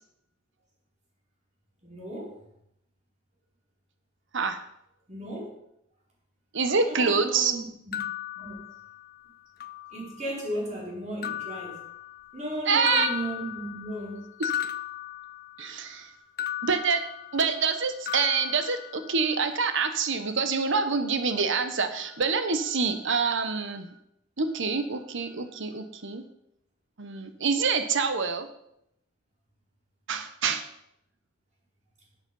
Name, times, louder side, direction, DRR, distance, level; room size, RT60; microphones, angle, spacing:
voice 1, 1.8-2.4 5.1-5.5 6.8-8.0 8.3-8.7 9.9-11.8 12.3-14.3, right 1 dB, 35° right, -3 dB, 4.5 m, -35 dB
voice 2, 6.5-7.5 12.7-13.1 14.4-14.5 15.6-16.1 16.6-17.0 17.3-23.9 24.4-26.2 27.0-28.5 30.1-30.6, right 5 dB, 65° right, 9 dB, 1.1 m, -26 dB
sound 1, 7.9-9.2 9.6-10.4 11.2-12.5 12.8-15.8 16.4-17.8 18.1-19.4, left 11 dB, 45° left, 0.5 m, -36 dB
11.5 x 8.1 x 5.5 m, 0.76 s
head